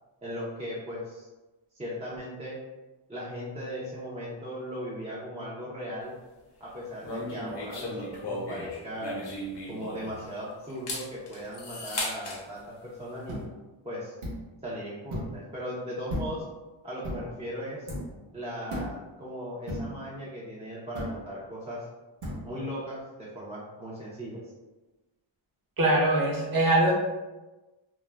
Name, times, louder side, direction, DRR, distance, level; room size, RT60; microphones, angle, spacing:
voice 1, 0.2-1.3 1.7-2.6 3.1-6.1 6.6-9.2 9.7-13.5 13.8-14.2 14.6-16.4 16.8-17.9 18.3-21.9 22.4-24.4, equal, 15° right, -7 dB, 0.4 m, -38 dB
sound 1, 7.0-10.3 10.7-12.4, left 1 dB, 55° left, 0.7 m, -36 dB
sound 2, 13.3-13.5 14.2-14.5 15.1-15.4 16.1-16.5 17.0-17.3 17.9-18.2 18.7-19.0 19.7-20.0 21.0-21.3 22.2-22.5, equal, 80° right, 0.8 m, -35 dB
voice 2, 25.8-26.9, right 1 dB, 45° right, -3 dB, 0.7 m, -22 dB
2.2 x 2.0 x 3.1 m, 1.1 s
wide cardioid pair, 120°, 49 cm